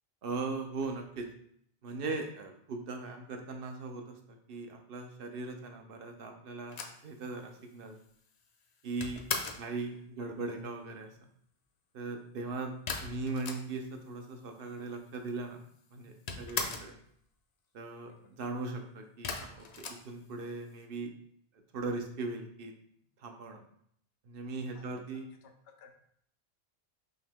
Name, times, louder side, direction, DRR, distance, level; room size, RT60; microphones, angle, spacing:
voice 1, 0.2-1.3 1.8-8.0 8.8-9.2 9.6-11.1 11.9-15.6 15.9-17.0 17.7-21.1 21.7-22.7 23.2-23.6 24.2-25.3, right 3 dB, 65° right, 4 dB, 0.8 m, -39 dB
sound 1, 6.7-9.7 12.9-14.0 14.3-14.4 14.6-15.4 15.7-17.0 19.2-20.7, left 4 dB, 50° left, 0.5 m, -39 dB
voice 2, 18.0-18.4 24.7-25.9, left 6 dB, 80° left, 5 dB, 0.9 m, -59 dB
5.7 x 2.1 x 3.4 m, 0.67 s
omnidirectional pair, 1.0 m